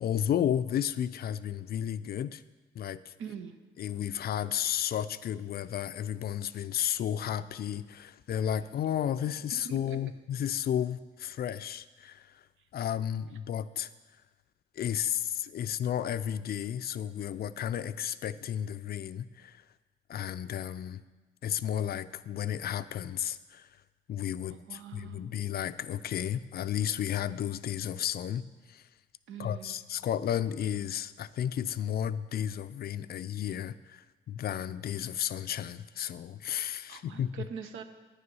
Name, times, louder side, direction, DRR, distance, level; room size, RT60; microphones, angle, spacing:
voice 1, 0.0-2.4 2.8-3.1 3.8-12.4 12.7-13.9 14.8-19.6 20.1-21.0 21.4-23.7 24.1-28.8 29.4-37.4, left 10 dB, 50° left, 14 dB, 0.4 m, -33 dB
voice 2, 3.2-3.5 9.6-10.0 24.5-25.3 29.3-29.8 36.9-37.8, right 7 dB, 80° right, 9 dB, 0.8 m, -43 dB
9.7 x 6.8 x 5.4 m, 1.3 s
cardioid pair, 90°, 20 cm